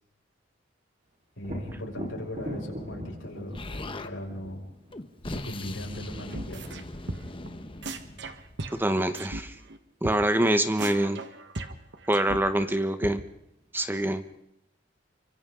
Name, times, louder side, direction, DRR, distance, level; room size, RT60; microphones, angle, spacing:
voice 1, 1.4-3.6 4.0-4.7 5.2-6.7, left 1 dB, 80° left, -1 dB, 6.3 m, -38 dB
Thunder, 1.4-9.1 12.7-12.8 13.3-14.2, equal, 40° right, 4.1 m, -42 dB
Explosion, 3.5-4.1 4.9-8.8, left 2 dB, 30° left, 1.2 m, -40 dB
sound 1, 6.3-6.8 7.1-7.5 7.8-9.4 9.7-9.8 10.0-10.2 10.4-10.5 10.8-12.7 13.0-13.1, right 2 dB, 65° right, 1.5 m, -37 dB
voice 2, 8.7-9.5 10.0-11.2 12.1-13.2 13.7-14.2, right 1 dB, 10° right, 9 dB, 1.0 m, -25 dB
29.0 x 25.0 x 3.9 m, 0.79 s
head